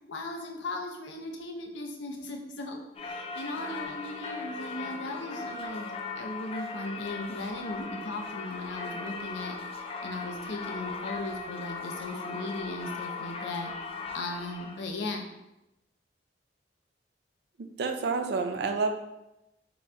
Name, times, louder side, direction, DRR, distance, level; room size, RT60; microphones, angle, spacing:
voice 1, 0.1-5.9 6.1-9.6 10.0-13.7 14.1-15.2, left 2 dB, 85° left, 2 dB, 0.6 m, -37 dB
Singing / Church bell, 3.0-14.9, left 4 dB, 35° left, 0.3 m, -38 dB
voice 2, 17.8-18.9, right 4 dB, 60° right, 6 dB, 0.4 m, -28 dB
3.9 x 3.5 x 2.2 m, 0.91 s
head